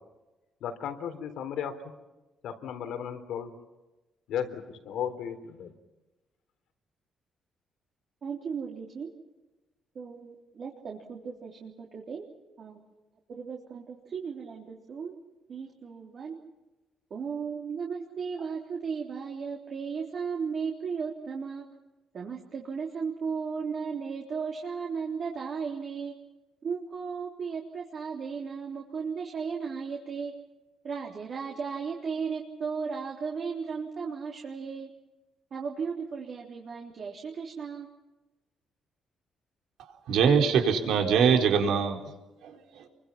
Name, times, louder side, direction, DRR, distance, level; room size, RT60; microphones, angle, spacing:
voice 1, 0.6-1.7 2.4-3.5 4.3-5.7, left 8 dB, 85° left, 3.8 m, -35 dB
voice 2, 8.2-9.1 10.0-12.3 12.6-12.8 13.3-15.1 15.5-16.4 17.1-21.6 22.1-26.1 26.6-30.3 30.8-34.9 35.5-37.9, right 5 dB, 45° right, 3.6 m, -35 dB
voice 3, 40.1-42.0 42.4-42.9, right 6 dB, 80° right, 4.4 m, -23 dB
30.0 x 24.0 x 5.9 m
cardioid pair, 135°, 0 cm